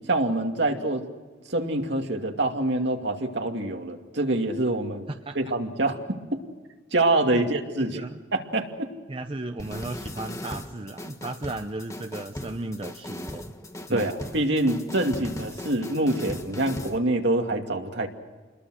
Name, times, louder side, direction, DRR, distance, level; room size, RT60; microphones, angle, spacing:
voice 1, 0.1-1.1 1.5-5.1 5.3-6.0 6.3-6.4 6.9-8.0 8.3-8.9 13.9-18.1, right 2 dB, 60° right, 3 dB, 2.5 m, -25 dB
voice 2, 7.8-8.2 9.1-13.5 13.9-14.1, right 2 dB, 30° right, 7 dB, 0.7 m, -35 dB
sound 1, 9.6-17.0, left 1 dB, 15° left, 1.4 m, -38 dB
28.5 x 21.5 x 6.5 m, 1.4 s
head